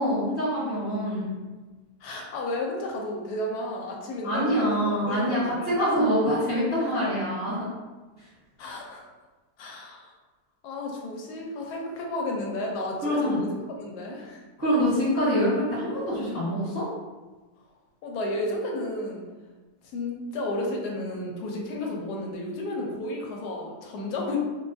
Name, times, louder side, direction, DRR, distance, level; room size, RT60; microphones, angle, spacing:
voice 1, 0.0-1.3 4.2-7.7 13.0-13.4 14.6-16.8, equal, 20° left, -12 dB, 1.1 m, -25 dB
voice 2, 2.0-5.7 6.8-6.9 8.6-9.0 9.6-10.1 10.6-13.5 13.8-14.4 18.0-19.2 19.9-24.4, left 1 dB, 80° left, 0 dB, 1.1 m, -32 dB
3.3 x 2.2 x 2.5 m, 1.2 s
omnidirectional pair, 1.7 m